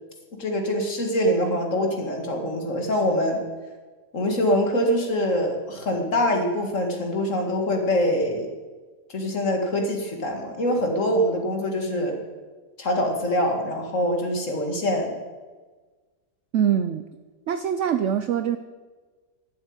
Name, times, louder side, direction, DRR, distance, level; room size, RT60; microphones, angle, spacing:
voice 1, 0.4-3.4 4.1-8.5 9.1-12.1 12.8-15.1, equal, 45° left, 2 dB, 2.2 m, -24 dB
voice 2, 16.5-17.0 17.5-18.6, right 9 dB, 75° right, 11 dB, 0.6 m, -23 dB
12.0 x 7.8 x 8.8 m, 1.4 s
omnidirectional pair, 1.9 m